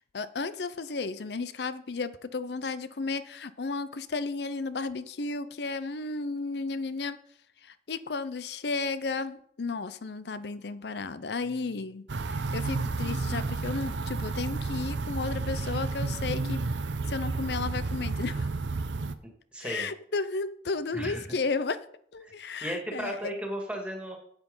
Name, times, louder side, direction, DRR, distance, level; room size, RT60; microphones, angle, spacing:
voice 1, 0.0-7.2 7.6-16.6 17.1-18.5 19.6-21.8 22.1-23.3, left 4 dB, 70° left, 14 dB, 0.6 m, -33 dB
sound 1, 12.1-19.1, right 3 dB, 85° right, 0.7 m, -31 dB
voice 2, 19.5-19.9 20.9-21.4 22.2-22.3 22.6-24.2, right 1 dB, 5° right, 1 dB, 2.1 m, -35 dB
8.9 x 8.2 x 5.5 m, 0.65 s
head